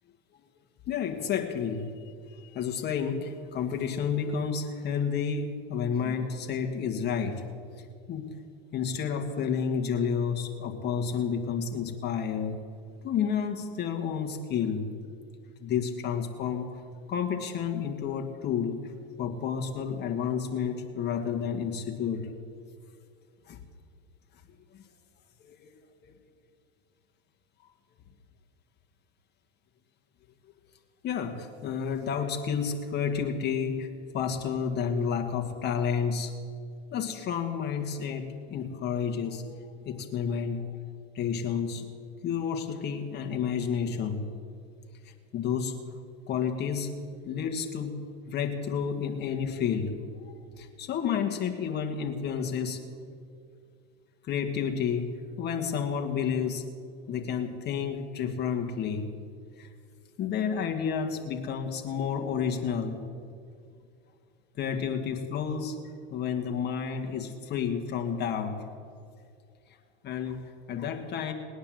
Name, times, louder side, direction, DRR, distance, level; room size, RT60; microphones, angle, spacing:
voice 1, 0.9-1.9 2.4-7.4 8.1-8.3 8.7-12.6 13.0-14.9 15.6-16.7 17.1-18.8 19.2-22.3 23.5-23.6 24.7-24.8 25.4-25.7 26.0-26.1 31.0-33.9 34.1-36.3 36.9-39.4 39.8-40.7 41.2-41.9 42.2-44.2 45.3-45.7 46.3-46.9 47.2-48.0 48.3-50.0 50.6-52.8 54.3-56.7 57.1-59.1 59.6-59.7 60.2-63.0 64.6-65.8 66.1-68.5 70.0-71.3, left 7 dB, 30° left, 4 dB, 1.8 m, -30 dB
19.5 x 9.5 x 7.8 m, 2.2 s
supercardioid pair, 135°, 32 cm